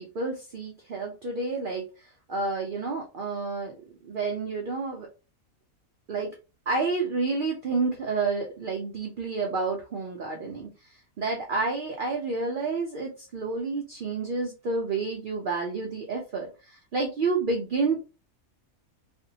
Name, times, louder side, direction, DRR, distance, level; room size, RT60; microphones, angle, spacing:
voice 1, 0.0-3.8 4.0-5.1 6.1-6.3 6.7-18.0, right 3 dB, 85° right, 1 dB, 0.4 m, -30 dB
2.5 x 2.1 x 2.6 m, 0.32 s
omnidirectional pair, 1.5 m